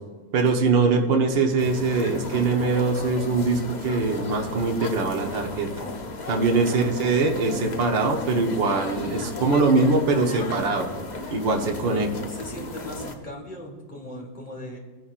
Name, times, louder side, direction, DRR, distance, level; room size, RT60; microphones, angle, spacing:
voice 1, 0.3-5.7 6.3-10.9 11.3-12.1, right 3 dB, 75° right, 2 dB, 1.8 m, -22 dB
sound 1, 1.6-13.1, left 3 dB, 50° left, 0.5 m, -35 dB
voice 2, 6.5-6.9 11.8-14.8, left 1 dB, 25° left, -1 dB, 1.9 m, -38 dB
17.5 x 10.0 x 2.5 m, 1.4 s
omnidirectional pair, 2.0 m